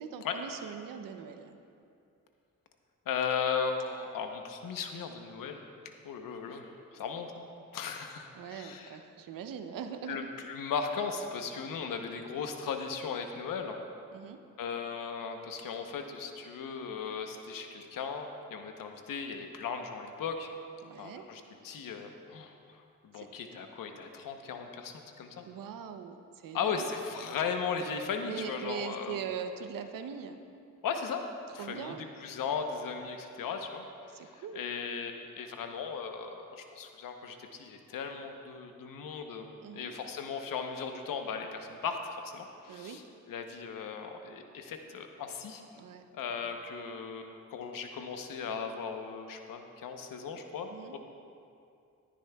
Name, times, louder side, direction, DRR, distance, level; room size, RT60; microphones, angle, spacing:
voice 1, 0.0-1.6 8.3-10.3 14.1-14.4 20.8-21.3 23.2-23.3 25.4-26.9 28.2-30.4 31.5-32.1 34.1-34.6 39.6-39.9 42.7-43.0 45.7-46.0 46.4-46.5 50.7-50.9, right 7 dB, 85° right, 7 dB, 0.7 m, -41 dB
voice 2, 3.1-5.6 6.0-7.4 7.7-9.0 10.1-13.8 14.6-20.5 21.0-25.5 26.5-29.2 30.8-31.2 31.5-33.8 34.2-39.5 39.7-45.6 46.1-51.0, left 6 dB, 85° left, 5 dB, 0.9 m, -37 dB
17.0 x 10.0 x 2.3 m, 2.5 s
cardioid pair, 55°, 32 cm